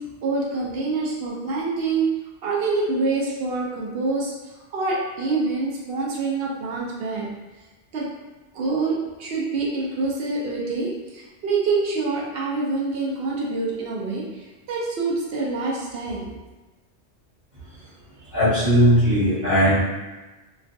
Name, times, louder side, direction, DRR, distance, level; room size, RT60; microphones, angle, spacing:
voice 1, 0.2-2.1 2.4-4.3 4.7-7.3 7.9-8.1 8.5-16.3, right 3 dB, 65° right, -4 dB, 0.7 m, -26 dB
voice 2, 18.3-19.8, equal, 40° right, -12 dB, 1.1 m, -18 dB
2.3 x 2.3 x 2.5 m, 1.2 s
omnidirectional pair, 1.1 m